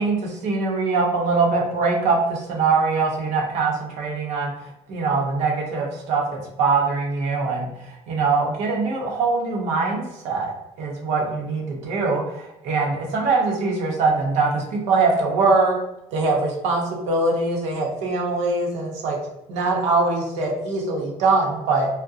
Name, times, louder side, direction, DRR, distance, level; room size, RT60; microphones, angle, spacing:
voice 1, 0.0-4.5 4.9-15.8 16.1-19.2 19.5-21.9, right 3 dB, 65° right, 0 dB, 0.7 m, -22 dB
2.6 x 2.0 x 2.3 m, 0.90 s
cardioid pair, 150°, 13 cm